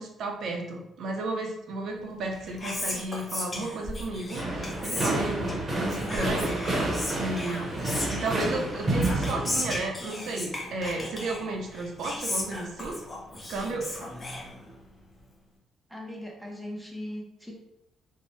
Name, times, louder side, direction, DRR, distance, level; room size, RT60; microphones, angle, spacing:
voice 1, 0.0-6.8 7.1-7.8 8.1-13.0 13.5-14.1, right 2 dB, 70° right, 2 dB, 0.5 m, -33 dB
Whispering, 2.1-15.0, left 1 dB, 30° left, 0.7 m, -36 dB
sound 1, 4.3-9.8, right 2 dB, 40° right, 0.8 m, -29 dB
voice 2, 15.9-17.5, left 1 dB, ahead, -1 dB, 0.7 m, -39 dB
2.6 x 2.1 x 3.1 m, 0.86 s
cardioid pair, 90°, 0 cm